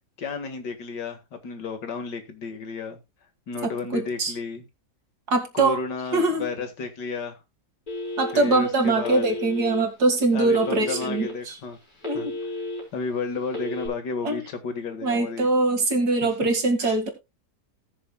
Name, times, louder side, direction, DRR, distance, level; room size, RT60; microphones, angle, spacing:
voice 1, 0.2-3.0 3.5-4.6 5.5-7.4 8.3-9.3 10.3-11.8 12.1-12.5 12.9-15.5 16.2-16.5 16.8-17.0, left 4 dB, 85° left, 2.3 m, -32 dB
voice 2, 3.6-4.3 5.3-5.8 6.1-6.5 8.2-11.5 12.0-12.3 14.2-14.4 15.0-17.1, right 2 dB, 65° right, 2.5 m, -23 dB
Telephone, 7.9-8.6 9.0-9.8 10.5-11.3 11.7-12.8 13.5-13.9, left 2 dB, 60° left, 4.5 m, -32 dB
19.0 x 6.6 x 2.3 m
omnidirectional pair, 1.8 m